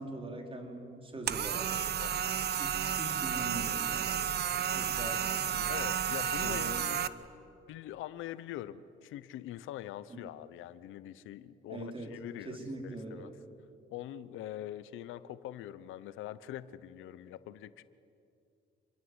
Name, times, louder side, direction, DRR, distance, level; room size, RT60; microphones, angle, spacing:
voice 1, 0.0-1.7 2.6-4.2 4.7-5.2 5.5-5.8 6.4-6.7 10.1-10.2 11.7-12.1 12.4-13.3, right 2 dB, 25° right, 2 dB, 4.6 m, -42 dB
sound 1, 1.3-7.1, right 8 dB, 55° right, 0.9 m, -32 dB
voice 2, 4.7-5.1 5.6-7.0 7.7-12.6 12.8-13.3 13.9-17.8, left 12 dB, 90° left, 15 dB, 0.9 m, -43 dB
27.0 x 21.5 x 8.1 m, 2.6 s
cardioid pair, 90°, 20 cm